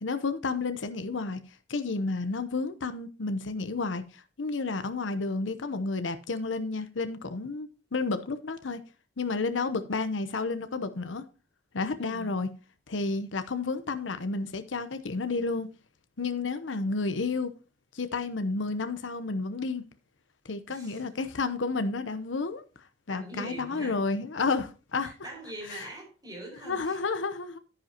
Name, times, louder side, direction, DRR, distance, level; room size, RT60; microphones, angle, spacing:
voice 1, 0.0-8.8 9.2-11.2 11.7-12.5 12.9-15.7 16.2-17.5 17.9-19.8 20.4-22.6 23.1-25.1 26.7-27.6, left 3 dB, 80° left, 0.8 m, -31 dB
voice 2, 12.0-12.4 20.7-21.1 23.1-24.0 25.0-27.1, right 1 dB, 20° right, 5.3 m, -43 dB
10.0 x 10.0 x 2.9 m
head